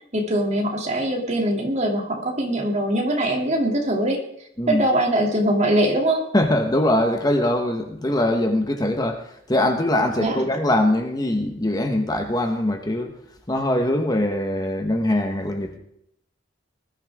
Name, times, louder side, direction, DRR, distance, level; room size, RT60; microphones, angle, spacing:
voice 1, 0.1-4.2 4.7-6.3 10.2-10.3, right 1 dB, 35° right, 1 dB, 2.7 m, -22 dB
voice 2, 6.3-13.2 13.5-15.8, left 1 dB, 20° left, 5 dB, 1.2 m, -22 dB
20.0 x 13.0 x 3.6 m, 0.74 s
head